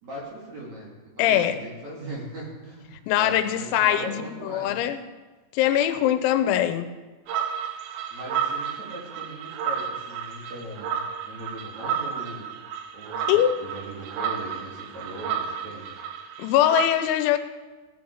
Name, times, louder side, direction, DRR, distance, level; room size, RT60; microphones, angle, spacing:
voice 1, 0.0-4.8 8.1-12.5 12.9-16.0, right 1 dB, 40° right, 3.2 m, -39 dB
voice 2, 1.2-1.6 3.1-5.0 5.5-6.9 13.3-13.6 16.4-17.4, left 11 dB, 90° left, 3.5 m, -22 dB
sound 1, 7.3-16.9, right 8 dB, 75° right, 2.5 m, -32 dB
17.0 x 10.0 x 4.8 m
omnidirectional pair, 5.9 m